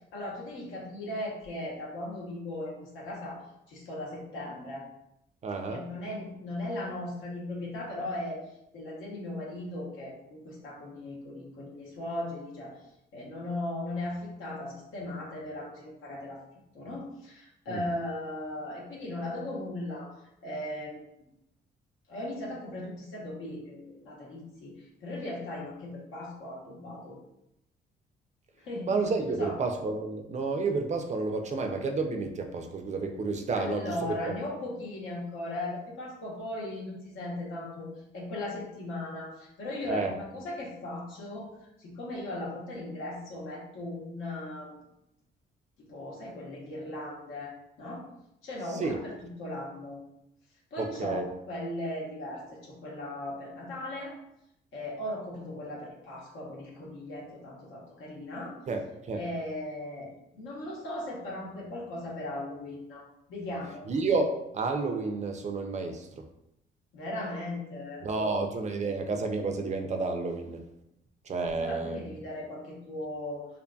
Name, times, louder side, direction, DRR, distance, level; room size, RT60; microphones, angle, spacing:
voice 1, 0.1-3.4 3.7-4.9 5.7-8.4 8.7-12.8 13.1-16.4 16.7-20.2 20.4-21.0 22.1-27.2 28.6-28.9 29.4-29.6 33.5-37.9 38.1-41.5 41.8-44.7 45.8-48.0 48.4-50.0 50.7-54.1 54.7-58.6 59.2-63.0 63.3-63.9 66.9-68.4 71.5-73.5, left 1 dB, 85° left, -4 dB, 0.9 m, -37 dB
voice 2, 5.4-5.9 17.7-17.8 28.9-34.3 39.9-40.1 48.7-49.0 50.8-51.3 58.7-59.2 63.9-66.3 68.0-70.6 71.3-72.0, right 3 dB, 35° right, 4 dB, 0.4 m, -30 dB
2.6 x 2.5 x 2.3 m, 0.82 s
cardioid pair, 90°, 20 cm